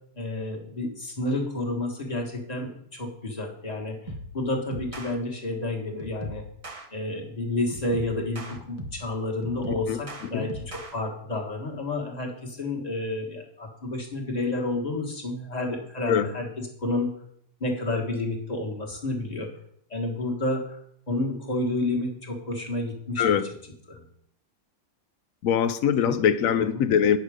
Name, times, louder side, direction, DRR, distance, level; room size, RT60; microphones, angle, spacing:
voice 1, 0.1-6.5 6.9-16.5 16.8-17.1 17.6-19.5 19.9-20.8 21.1-23.2 23.9-24.0 26.0-26.2, left 2 dB, 25° left, 0 dB, 1.6 m, -30 dB
sound 1, 4.1-4.4 4.7-5.1 6.0-6.9 7.7-9.1 9.4-10.9, equal, 25° right, 0.8 m, -38 dB
voice 2, 9.7-10.0 10.3-10.5 16.1-16.3 23.2-23.5 25.4-27.2, left 8 dB, 65° left, 12 dB, 0.9 m, -23 dB
9.4 x 6.4 x 4.9 m, 0.68 s
omnidirectional pair, 1.8 m